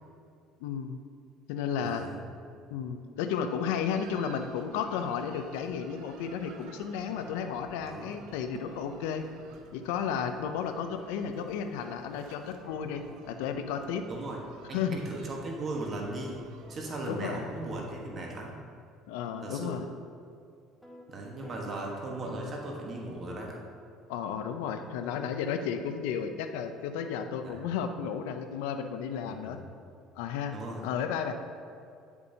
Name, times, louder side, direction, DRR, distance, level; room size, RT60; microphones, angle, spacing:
voice 1, 0.6-1.0 1.5-2.1 2.7-9.2 9.7-14.0 14.7-15.0 17.1-17.5 19.1-19.9 24.1-29.6 30.2-30.6 30.8-31.3, left 7 dB, 90° left, 7 dB, 0.5 m, -33 dB
voice 2, 1.8-2.2 7.8-8.1 14.1-14.4 14.7-16.4 16.7-18.6 19.4-19.8 21.1-23.6 27.4-27.6 29.2-29.6 30.5-30.8, right 2 dB, 40° right, -1 dB, 1.2 m, -37 dB
sound 1, 3.6-18.0, right 5 dB, 70° right, 0.6 m, -53 dB
sound 2, 6.4-8.8 11.2-13.6 16.0-18.4 20.8-21.1 21.4-22.8, left 1 dB, ahead, 1.4 m, -54 dB
9.7 x 7.0 x 2.8 m, 2.4 s
supercardioid pair, 110°, 0 cm